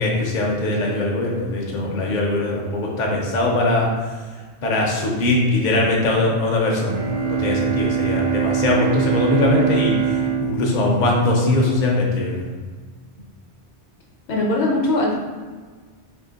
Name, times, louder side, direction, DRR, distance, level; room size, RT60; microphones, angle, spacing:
voice 1, 0.0-3.9 4.6-12.5, left 2 dB, 50° left, -2 dB, 0.7 m, -21 dB
Bowed string instrument, 6.9-11.8, right 7 dB, 60° right, 0.6 m, -23 dB
voice 2, 14.3-15.2, left 2 dB, 70° left, -2 dB, 1.0 m, -20 dB
2.8 x 2.8 x 3.8 m, 1.4 s
omnidirectional pair, 1.1 m